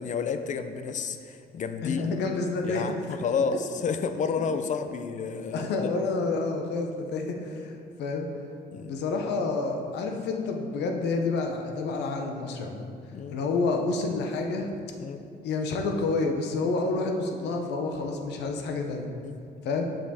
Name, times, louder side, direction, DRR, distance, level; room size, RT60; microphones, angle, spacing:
voice 1, 0.0-2.0 2.6-5.9 8.7-9.0 13.1-13.4 15.0-15.2 19.2-19.4, left 5 dB, 45° left, 9 dB, 0.4 m, -31 dB
voice 2, 1.8-2.8 5.5-7.7 8.0-8.3 8.8-12.9 13.3-14.7 15.4-19.1 19.6-19.8, left 3 dB, 90° left, 3 dB, 0.7 m, -29 dB
5.9 x 5.2 x 4.2 m, 2.5 s
cardioid pair, 105°, 17 cm